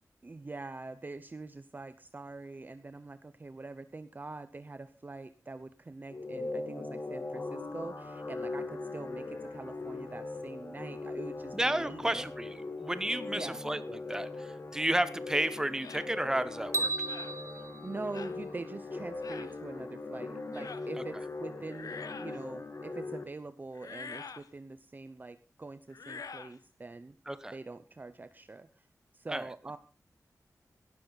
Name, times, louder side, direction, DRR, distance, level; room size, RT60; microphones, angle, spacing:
voice 1, 0.2-12.3 13.3-13.6 17.5-27.2 27.5-28.9 29.1-29.8, right 3 dB, 30° right, 12 dB, 0.7 m, -44 dB
sound 1, 6.1-23.2, left 3 dB, 40° left, 2.4 m, -40 dB
voice 2, 11.5-16.9 21.0-21.1 27.3-27.5 29.3-29.5, right 1 dB, 10° right, 13 dB, 1.1 m, -32 dB
sound 2, 15.8-16.1 17.1-17.4 18.1-18.4 19.2-19.5 20.5-20.9 21.6-22.4 23.7-24.5 25.9-26.6, left 5 dB, 75° left, 1.1 m, -45 dB
sound 3, 16.7-19.0, right 3 dB, 55° right, 1.6 m, -36 dB
17.5 x 12.5 x 4.1 m, 0.35 s
wide cardioid pair, 130°, 6 cm